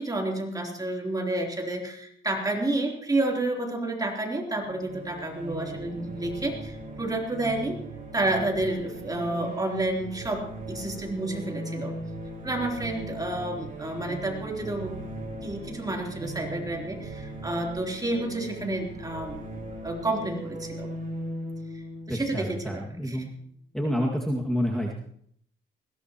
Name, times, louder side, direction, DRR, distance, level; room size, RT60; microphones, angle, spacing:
voice 1, 0.0-7.8 8.1-11.9 12.4-14.9 15.4-19.4 19.8-20.9 21.7-21.8 22.1-23.2, right 2 dB, 20° right, 0 dB, 3.5 m, -30 dB
sound 1, 4.6-23.3, right 2 dB, 45° right, 4.5 m, -39 dB
voice 2, 22.1-23.3 23.7-24.9, equal, ahead, -2 dB, 2.2 m, -28 dB
21.0 x 16.5 x 3.1 m, 0.67 s
cardioid pair, 90°, 20 cm